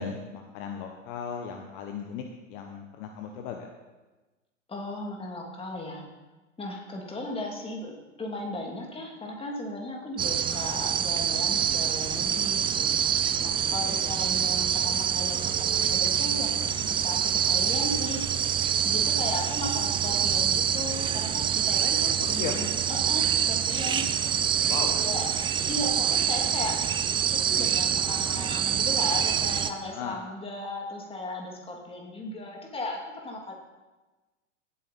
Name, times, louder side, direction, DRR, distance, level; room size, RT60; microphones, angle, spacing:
voice 1, 0.0-2.2 2.5-3.7 13.8-14.2 22.2-22.6 24.7-25.0 29.8-30.2, left 7 dB, 45° left, 4 dB, 1.2 m, -37 dB
voice 2, 4.7-6.0 6.6-12.9 13.4-18.2 18.8-24.1 25.0-25.2 25.7-26.8 27.3-33.5, left 2 dB, 15° left, 0 dB, 2.7 m, -36 dB
sound 1, 10.2-29.7, right 8 dB, 15° right, 0.4 m, -26 dB
17.5 x 8.6 x 4.2 m, 1.2 s
figure-of-eight pair, 95°, 38 cm